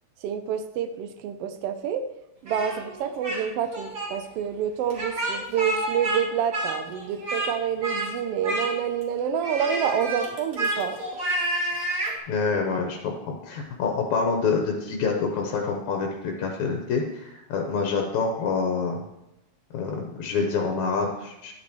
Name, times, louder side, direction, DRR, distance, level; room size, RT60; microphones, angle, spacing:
voice 1, 0.2-2.0 2.4-11.2, right 8 dB, 75° right, 9 dB, 1.4 m, -28 dB
Speech, 2.5-3.4 3.7-4.1 4.9-6.2 6.5-7.5 7.8-8.1 8.4-9.0 9.4-12.2, right 1 dB, 40° right, 2.1 m, -29 dB
voice 2, 12.3-19.0 19.7-21.5, left 4 dB, 85° left, 2 dB, 2.4 m, -27 dB
12.5 x 8.5 x 3.1 m, 0.91 s
omnidirectional pair, 3.3 m